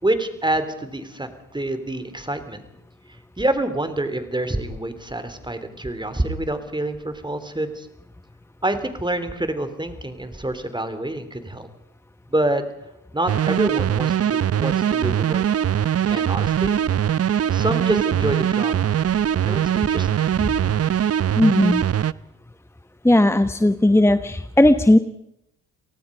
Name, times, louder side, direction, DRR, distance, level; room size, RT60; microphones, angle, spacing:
voice 1, 0.0-2.6 3.4-7.9 8.6-11.7 12.3-12.6 13.1-15.4 16.1-16.8 17.5-19.0 19.4-20.8, right 1 dB, 10° right, 10 dB, 3.6 m, -27 dB
sound 1, 13.3-22.1, right 9 dB, 40° right, 0.8 m, -21 dB
voice 2, 21.4-21.8 23.0-25.0, left 1 dB, 5° left, 11 dB, 1.0 m, -16 dB
30.0 x 18.5 x 5.4 m, 0.79 s
supercardioid pair, 60°, 39 cm